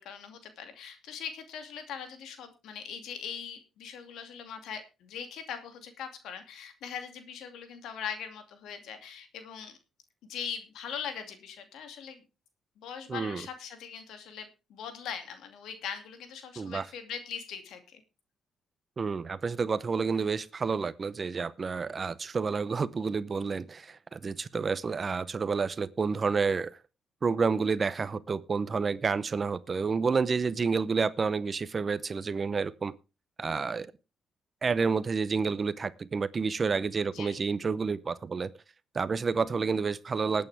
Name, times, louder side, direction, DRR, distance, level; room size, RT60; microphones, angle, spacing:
voice 1, 0.0-9.7 10.2-12.2 12.8-18.0 37.0-37.5, left 7 dB, 80° left, 7 dB, 2.5 m, -41 dB
voice 2, 13.1-13.4 16.6-16.9 19.0-26.8 27.2-32.9 33.4-33.9 34.6-38.5 38.9-40.5, right 5 dB, 35° right, 16 dB, 0.8 m, -29 dB
20.0 x 8.7 x 3.5 m, 0.30 s
cardioid pair, 90°, 0 cm